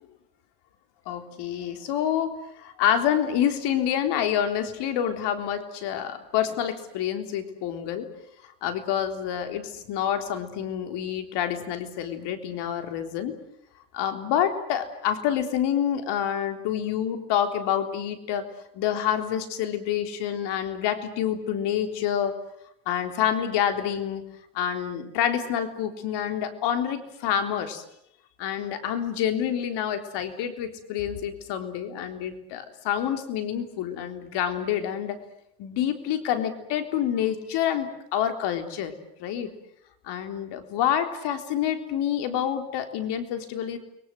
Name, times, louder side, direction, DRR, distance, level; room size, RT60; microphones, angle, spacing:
voice 1, 1.1-8.1 8.6-13.4 13.9-18.5 18.7-22.4 22.9-24.2 24.5-27.8 28.4-35.2 35.6-39.5 40.1-43.8, left 9 dB, 65° left, 8 dB, 3.9 m, -27 dB
30.0 x 23.0 x 7.9 m, 0.79 s
hypercardioid pair, 75°, 45 cm